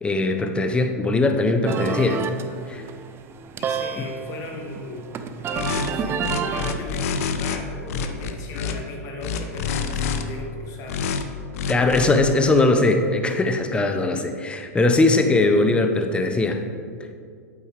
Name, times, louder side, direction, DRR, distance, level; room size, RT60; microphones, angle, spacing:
voice 1, 0.0-2.2 2.7-2.8 4.0-4.1 11.7-16.6, left 2 dB, 10° left, 6 dB, 0.7 m, -20 dB
sound 1, 1.6-6.8, right 6 dB, 25° right, 0.5 m, -30 dB
voice 2, 3.6-11.2, left 2 dB, 40° left, 0 dB, 1.8 m, -38 dB
sound 2, 5.5-5.9 6.2-7.6 7.9-8.7 9.2-10.2 10.9-11.2 11.5-12.1, left 6 dB, 65° left, 0.7 m, -27 dB
8.7 x 8.3 x 3.3 m, 2.2 s
hypercardioid pair, 110°, 9 cm